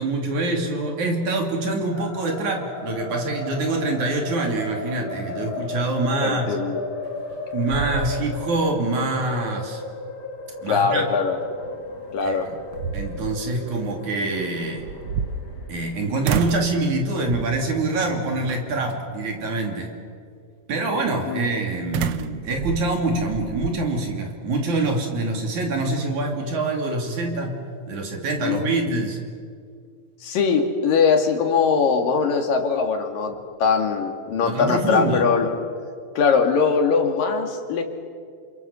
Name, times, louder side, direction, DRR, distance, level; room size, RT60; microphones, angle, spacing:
voice 1, 0.0-6.5 7.5-9.8 10.6-11.0 12.2-12.4 12.9-14.9 15.7-19.9 20.7-27.6 27.9-29.2 34.4-35.3, right 2 dB, 60° right, 2 dB, 4.4 m, -25 dB
sound 1, 1.9-19.3, left 2 dB, 55° left, 3.7 m, -36 dB
voice 2, 6.2-6.8 10.7-11.4 12.1-12.5 21.3-21.4 28.4-29.0 30.2-35.5 36.2-37.8, left 5 dB, 80° left, 4 dB, 3.9 m, -21 dB
sound 2, 7.1-7.4 7.7-8.7 9.1-9.2 11.9-12.0 12.5-13.4 14.8-15.9 16.2-16.8 17.3-17.7 18.5-18.9 21.9-23.8, right 7 dB, 75° right, 1.3 m, -29 dB
29.0 x 27.0 x 7.0 m, 2.1 s
omnidirectional pair, 3.9 m